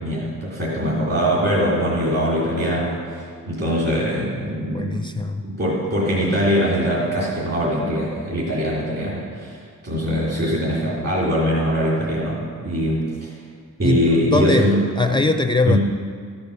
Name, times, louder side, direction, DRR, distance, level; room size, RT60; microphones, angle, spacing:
voice 1, 0.0-5.0 5.4-13.3 13.8-15.2 15.6-15.8, equal, 50° right, -6 dB, 3.4 m, -22 dB
voice 2, 4.7-5.4 13.8-15.8, left 3 dB, 15° left, 6 dB, 0.4 m, -21 dB
13.5 x 7.0 x 6.7 m, 2.1 s
wide cardioid pair, 100°, 33 cm